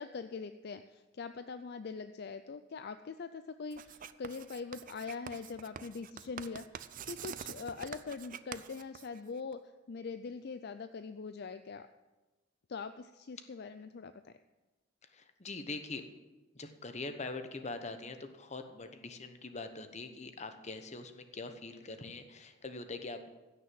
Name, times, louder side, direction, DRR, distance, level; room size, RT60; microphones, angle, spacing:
voice 1, 0.0-9.6 9.9-11.9 12.7-14.3, left 5 dB, 55° left, 10 dB, 0.4 m, -43 dB
Writing, 3.7-9.5, right 8 dB, 45° right, 0.5 m, -46 dB
voice 2, 15.1-16.1 16.5-23.3, left 3 dB, 35° left, 8 dB, 1.0 m, -43 dB
15.5 x 6.6 x 7.7 m, 1.1 s
head